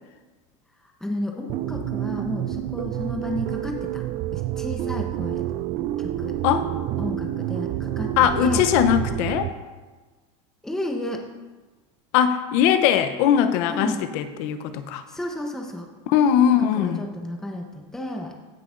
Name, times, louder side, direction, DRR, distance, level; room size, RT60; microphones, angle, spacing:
voice 1, 1.0-4.0 4.3-5.5 6.0-6.3 7.0-8.2 8.4-8.7 10.6-11.2 13.7-14.0 15.1-15.9 16.4-18.3, left 1 dB, 5° left, 1 dB, 0.8 m, -32 dB
sound 1, 1.5-9.5, right 13 dB, 40° right, 0.4 m, -28 dB
voice 2, 8.2-9.5 12.1-15.0 16.1-17.0, left 9 dB, 65° left, 10 dB, 0.7 m, -20 dB
16.0 x 5.8 x 2.5 m, 1.3 s
supercardioid pair, 135°, 16 cm